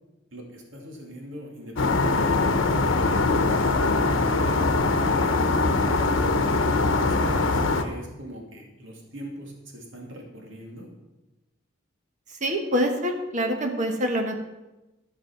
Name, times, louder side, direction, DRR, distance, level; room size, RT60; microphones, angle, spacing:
voice 1, 0.3-5.8 7.1-10.9, equal, 75° right, 0 dB, 2.6 m, -42 dB
sound 1, 1.8-7.8, left 3 dB, 80° left, 0.9 m, -22 dB
voice 2, 12.4-14.3, equal, 40° right, 4 dB, 1.2 m, -25 dB
13.5 x 6.3 x 5.9 m, 1.0 s
head